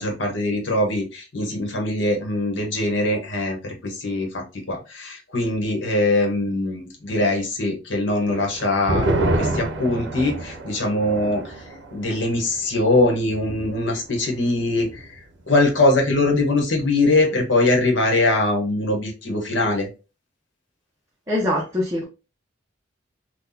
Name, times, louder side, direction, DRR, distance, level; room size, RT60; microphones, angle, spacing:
voice 1, 0.0-11.6 11.9-15.2 15.5-19.9, left 2 dB, 75° left, 1.1 m, -22 dB
sound 1, 8.3-15.2 15.5-15.6 16.0-16.5, right 1 dB, 70° right, 0.6 m, -29 dB
voice 2, 21.3-22.0, left 1 dB, 15° right, 0.6 m, -23 dB
3.9 x 2.3 x 2.7 m
head